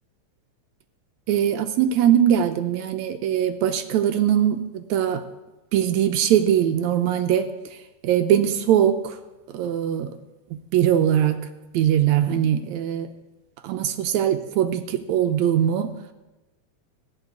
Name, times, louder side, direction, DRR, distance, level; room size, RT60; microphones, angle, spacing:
voice 1, 1.3-5.2 5.7-7.5 8.0-9.2 9.5-10.1 10.7-11.4 11.7-13.1 13.6-16.0, right 10 dB, 75° right, 8 dB, 1.8 m, -21 dB
16.5 x 6.7 x 9.4 m, 1.1 s
omnidirectional pair, 3.7 m